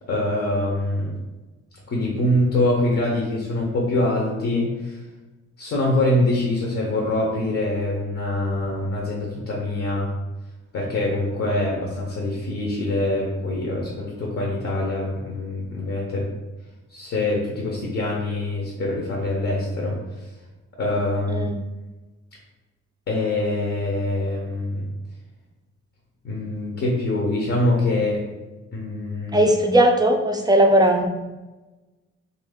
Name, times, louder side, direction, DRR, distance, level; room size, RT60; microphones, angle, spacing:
voice 1, 0.1-1.2 1.9-5.0 5.6-10.1 10.7-16.3 16.9-20.3 20.8-21.5 23.1-24.9 26.2-28.2 28.7-29.4, left 1 dB, 50° left, -2 dB, 0.8 m, -24 dB
voice 2, 21.3-21.6 29.3-31.1, right 1 dB, 15° right, 3 dB, 0.4 m, -18 dB
2.8 x 2.7 x 3.5 m, 1.1 s
cardioid pair, 90°, 30 cm